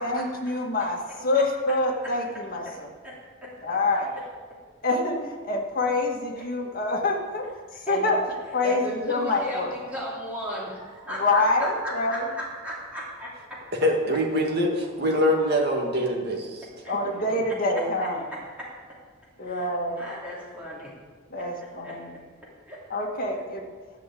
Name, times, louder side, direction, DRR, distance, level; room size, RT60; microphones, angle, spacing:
voice 1, 0.0-2.9 3.6-4.1 4.8-7.5 7.9-8.2 8.5-9.7 11.1-12.2 16.9-18.2 19.4-20.0 21.3-22.1 22.9-23.7, left 2 dB, 40° left, -1 dB, 2.0 m, -26 dB
voice 2, 8.6-11.2 11.6-13.6 16.8-16.9 18.6-18.7 19.5-19.7 20.0-20.9 21.4-21.5 21.8-21.9 22.7-22.8, equal, 5° right, -7 dB, 3.1 m, -35 dB
voice 3, 13.8-16.7 17.4-17.5, equal, 50° right, 0 dB, 2.1 m, -24 dB
12.5 x 6.4 x 8.6 m, 1.5 s
head